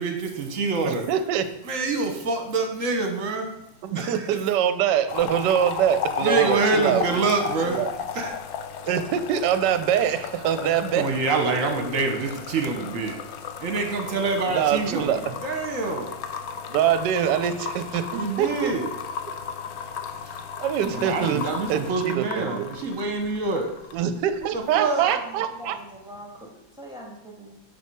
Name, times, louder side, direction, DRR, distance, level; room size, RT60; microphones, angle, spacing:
voice 1, 0.0-1.0 1.7-3.5 3.9-4.3 6.2-7.8 8.1-8.3 11.0-13.2 13.6-16.2 18.1-18.9 20.9-23.7 24.5-25.0, right 3 dB, 50° right, 4 dB, 1.3 m, -26 dB
voice 2, 0.8-1.5 3.8-7.2 7.6-7.9 8.9-11.1 11.4-11.5 14.5-15.2 16.7-18.7 20.6-22.7 23.9-25.8, right 9 dB, 70° right, 10 dB, 1.2 m, -24 dB
sound 1, 5.1-24.0 24.3-24.7, left 7 dB, 65° left, 0.9 m, -34 dB
voice 3, 24.7-27.6, equal, 5° right, -3 dB, 1.4 m, -41 dB
8.4 x 4.7 x 4.6 m, 0.81 s
omnidirectional pair, 2.1 m